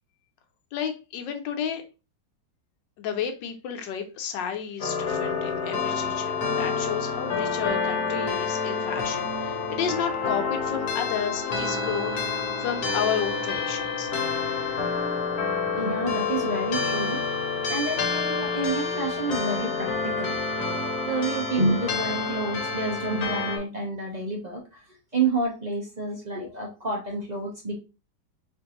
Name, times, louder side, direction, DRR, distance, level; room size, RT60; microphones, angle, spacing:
voice 1, 0.7-1.8 3.0-14.1, left 8 dB, 90° left, 6 dB, 1.4 m, -32 dB
sound 1, 4.8-23.6, left 5 dB, 65° left, 1.4 m, -28 dB
voice 2, 15.8-17.2 17.7-20.4 20.7-20.8 21.1-24.6 25.1-27.8, right 3 dB, 70° right, -1 dB, 0.4 m, -29 dB
4.4 x 2.5 x 2.9 m, 0.31 s
omnidirectional pair, 1.9 m